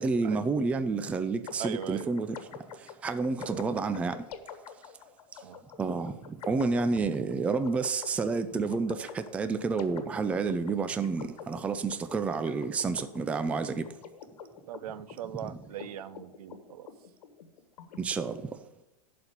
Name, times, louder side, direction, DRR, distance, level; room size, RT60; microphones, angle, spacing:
voice 1, 0.0-2.4 3.0-4.2 5.8-13.9 15.4-15.6 18.0-18.5, right 4 dB, 5° right, 0.4 m, -30 dB
sound 1, 1.5-18.2, left 7 dB, 80° left, 1.5 m, -47 dB
voice 2, 1.6-2.1 3.4-3.8 5.4-5.6 14.7-16.9, right 10 dB, 75° right, 0.7 m, -40 dB
11.5 x 4.3 x 8.0 m
supercardioid pair, 155°, 19 cm